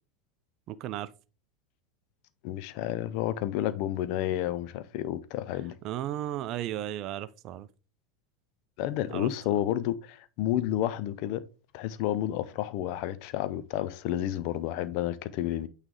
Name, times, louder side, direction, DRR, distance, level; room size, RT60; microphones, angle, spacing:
voice 1, 0.7-1.1 5.8-7.7 9.1-9.3, right 12 dB, 45° right, 0.4 m, -34 dB
voice 2, 2.4-5.7 8.8-11.4 11.7-15.7, left 12 dB, 50° left, 0.5 m, -30 dB
8.9 x 3.3 x 3.7 m
figure-of-eight pair, 80°, 0 cm